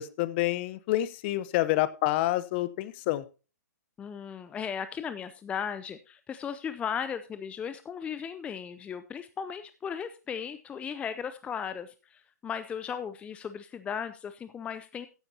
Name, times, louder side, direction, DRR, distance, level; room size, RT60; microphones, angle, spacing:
voice 1, 0.0-3.2, left 16 dB, 35° left, 17 dB, 0.8 m, -28 dB
voice 2, 4.0-15.1, left 7 dB, 15° left, 12 dB, 0.5 m, -36 dB
14.5 x 10.0 x 2.8 m, 0.32 s
hypercardioid pair, 135°, 9 cm